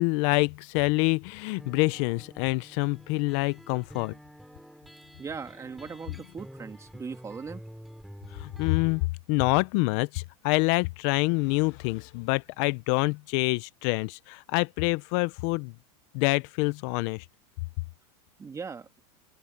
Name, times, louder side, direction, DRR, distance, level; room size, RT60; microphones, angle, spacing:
voice 1, 0.0-4.1 8.3-15.7 16.1-17.3, left 26 dB, 55° left, 0.6 m, -26 dB
sound 1, 1.6-9.1, equal, ahead, 5.0 m, -48 dB
voice 2, 5.2-7.6 18.4-18.9, right 5 dB, 15° right, 2.6 m, -39 dB
open air
supercardioid pair, 135°, 18 cm